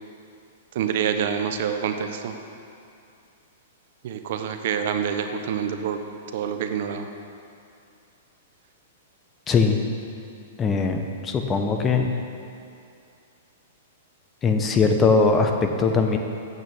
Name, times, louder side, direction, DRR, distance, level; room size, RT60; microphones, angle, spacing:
voice 1, 0.7-2.3 4.0-6.0 6.3-7.1, right 8 dB, 60° right, 7 dB, 0.7 m, -26 dB
voice 2, 9.5-9.8 10.6-12.1 14.4-16.2, left 4 dB, 20° left, 4 dB, 0.8 m, -20 dB
8.0 x 6.4 x 7.1 m, 2.5 s
hypercardioid pair, 125°, 0 cm